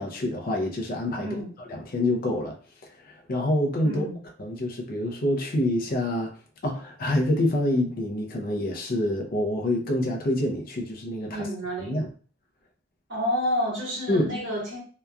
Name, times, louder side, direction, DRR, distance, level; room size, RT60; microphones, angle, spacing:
voice 1, 0.0-2.6 3.0-4.1 4.4-6.3 6.6-11.5 11.8-12.1 14.1-14.3, left 1 dB, 45° left, 0.5 m, -27 dB
voice 2, 1.2-1.5 3.8-4.2 11.3-12.0 13.1-14.8, equal, 60° right, 1.2 m, -29 dB
2.9 x 2.3 x 2.2 m
head